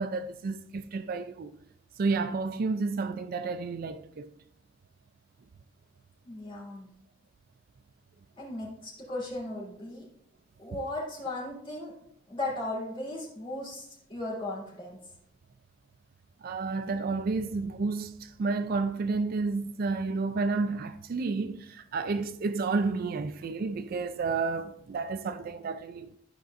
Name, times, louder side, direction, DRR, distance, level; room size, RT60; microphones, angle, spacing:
voice 1, 0.0-1.5 2.0-4.3 16.4-26.2, right 4 dB, 50° right, 0.3 m, -31 dB
voice 2, 6.2-6.9 8.4-10.0 10.6-11.9 12.3-15.0, left 2 dB, 30° left, 3.1 m, -36 dB
12.5 x 5.1 x 2.5 m
head